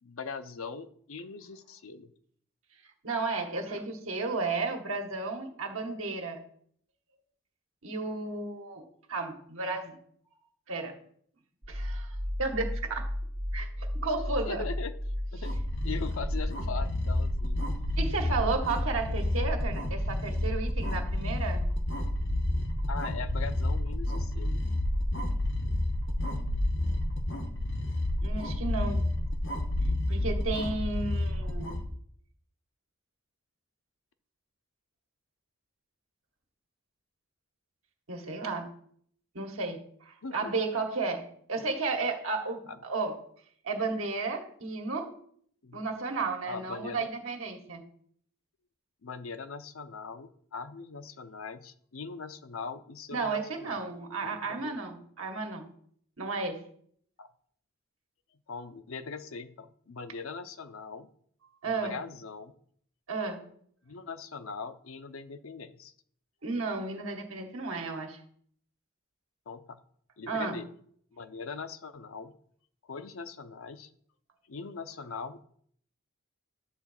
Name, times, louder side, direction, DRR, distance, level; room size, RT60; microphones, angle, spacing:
voice 1, 0.0-2.1 14.4-14.9 15.3-15.5 15.8-17.6 22.9-24.6 40.2-40.5 41.6-41.7 42.7-42.8 45.6-45.8 46.5-47.1 49.0-53.7 54.2-54.8 57.2-57.3 58.5-61.1 61.6-62.5 63.9-65.9 69.5-69.8 70.2-70.7 71.1-72.4 72.8-73.9 74.5-75.4, left 5 dB, 80° left, 10 dB, 0.7 m, -41 dB
voice 2, 3.0-6.4 7.8-10.0 10.7-11.0 11.7-13.1 13.5-14.6 18.0-21.6 28.2-29.0 30.1-31.8 38.1-38.7 39.4-39.8 40.1-43.2 43.6-45.1 45.7-47.8 53.1-55.7 56.2-56.6 61.6-62.0 63.1-63.4 66.4-68.2 70.3-70.6, right 3 dB, 75° right, 3 dB, 1.8 m, -33 dB
sound 1, 11.6-27.0, equal, 40° right, 1.7 m, -34 dB
sound 2, 15.4-31.8, left 1 dB, 60° left, 1.4 m, -31 dB
11.5 x 4.0 x 7.4 m, 0.63 s
head